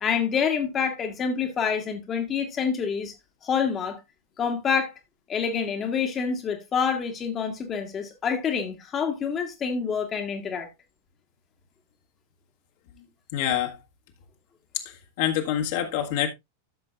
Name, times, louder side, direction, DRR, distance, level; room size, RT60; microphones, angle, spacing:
voice 1, 0.0-3.1 3.4-4.0 4.4-4.9 5.3-10.7, left 6 dB, 25° left, 1.5 m, -27 dB
voice 2, 13.3-13.8 14.7-16.3, left 11 dB, 50° left, 1.6 m, -26 dB
13.0 x 6.7 x 2.5 m
figure-of-eight pair, 90°, 0 cm